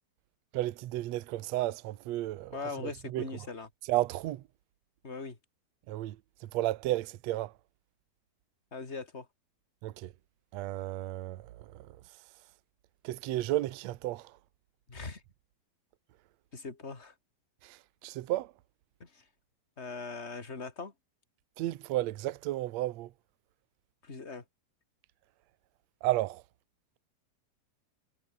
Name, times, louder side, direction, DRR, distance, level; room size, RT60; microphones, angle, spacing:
voice 1, 0.5-2.6 3.1-3.2 3.9-4.4 5.9-6.2 6.4-7.5 9.8-10.1 10.5-11.9 13.0-14.3 17.6-18.5 21.6-23.1 26.0-26.4, right 16 dB, 85° right, 1.5 m, -33 dB
voice 2, 2.5-3.7 5.0-5.4 8.7-9.3 14.9-15.2 16.5-17.1 19.0-19.2 19.8-20.9 24.0-24.4, left 4 dB, 20° left, 2.8 m, -40 dB
omnidirectional pair, 4.4 m